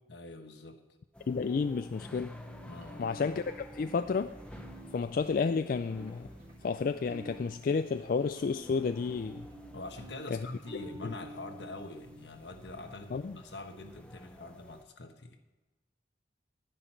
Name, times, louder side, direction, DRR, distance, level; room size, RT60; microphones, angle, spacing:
voice 1, 0.1-0.8 2.7-3.1 9.7-15.4, left 2 dB, 75° left, 6 dB, 1.2 m, -45 dB
sound 1, 1.1-14.8, equal, 5° left, 0.8 m, -52 dB
voice 2, 1.3-2.3 3.0-4.3 4.9-6.3 6.6-9.5 10.3-10.5 11.0-11.1 13.1-13.4, left 5 dB, 50° left, 10 dB, 0.3 m, -31 dB
sound 2, 2.5-12.3, right 1 dB, 35° right, 2.7 m, -51 dB
11.5 x 10.0 x 4.5 m, 1.1 s
head